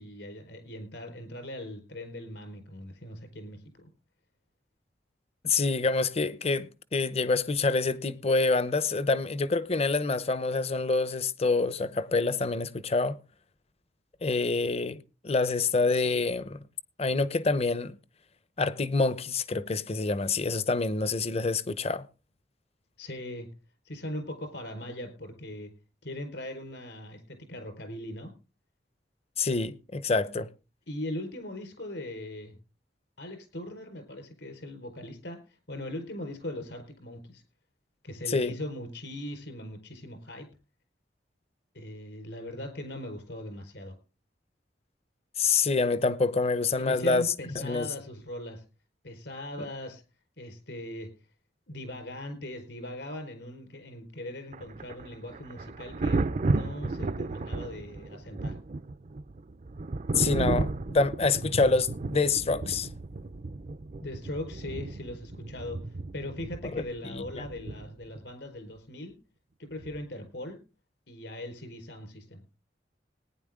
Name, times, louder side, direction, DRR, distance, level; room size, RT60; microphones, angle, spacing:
voice 1, 0.0-3.9 23.0-23.5 23.9-25.7 26.0-28.3 30.9-32.6 33.2-37.4 38.0-40.5 41.7-43.9 46.8-48.6 49.0-50.0 50.4-51.1 51.7-58.6 64.0-69.1 69.6-70.6 71.1-72.4, left 1 dB, 70° left, 4.5 m, -40 dB
voice 2, 5.4-13.2 14.2-16.6 17.0-18.0 18.6-22.1 29.4-30.5 38.3-38.5 45.4-47.3 47.6-47.9 60.1-62.9 66.7-67.5, left 3 dB, 35° left, 0.8 m, -27 dB
Thunder, 54.5-68.2 69.8-70.0, right 2 dB, 45° right, 0.5 m, -33 dB
19.0 x 10.0 x 3.7 m
head